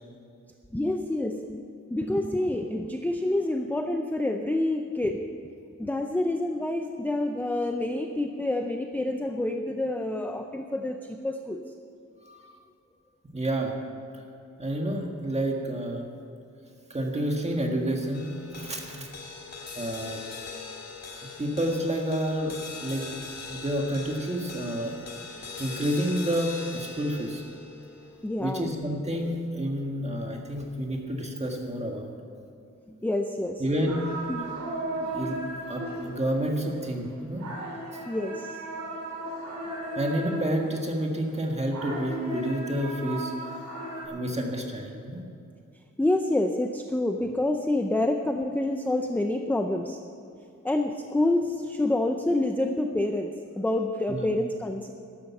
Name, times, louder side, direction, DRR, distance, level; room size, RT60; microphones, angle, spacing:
voice 1, 0.7-5.3 5.8-11.6 28.2-28.7 32.9-33.6 34.3-34.5 38.1-38.6 46.0-50.0 50.6-54.9, left 1 dB, 5° left, 5 dB, 0.5 m, -28 dB
voice 2, 13.3-13.8 14.1-14.2 14.6-16.1 16.9-19.1 19.8-20.2 21.4-24.9 25.6-27.4 28.4-32.1 33.6-34.1 35.1-35.4 35.7-37.5 40.0-43.3 44.1-45.2 54.1-54.3, right 1 dB, 20° right, 1 dB, 1.8 m, -29 dB
sound 1, 18.1-30.6, left 4 dB, 60° left, 2.0 m, -42 dB
sound 2, 33.9-41.0 41.3-44.1, right 1 dB, 75° right, 3.4 m, -36 dB
12.0 x 12.0 x 7.1 m, 2.6 s
wide cardioid pair, 165°, 30 cm